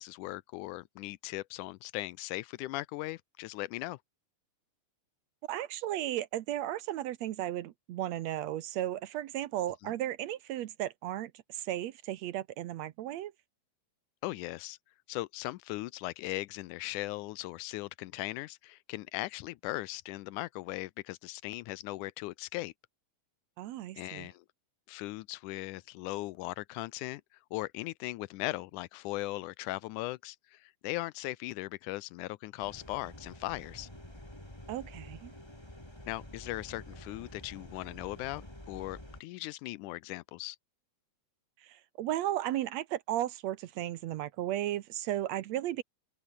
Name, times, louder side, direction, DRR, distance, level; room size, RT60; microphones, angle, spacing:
voice 1, 0.0-4.0 9.8-9.9 14.2-14.8 15.1-22.7 24.0-24.5 24.9-27.2 27.5-33.9 36.1-40.6, left 19 dB, 90° left, 2.1 m, -38 dB
voice 2, 5.5-13.3 23.6-24.3 34.7-35.3 41.6-45.8, right 13 dB, 70° right, 1.9 m, -35 dB
sound 1, 32.6-39.2, left 1 dB, 10° left, 4.4 m, -49 dB
omnidirectional pair, 3.5 m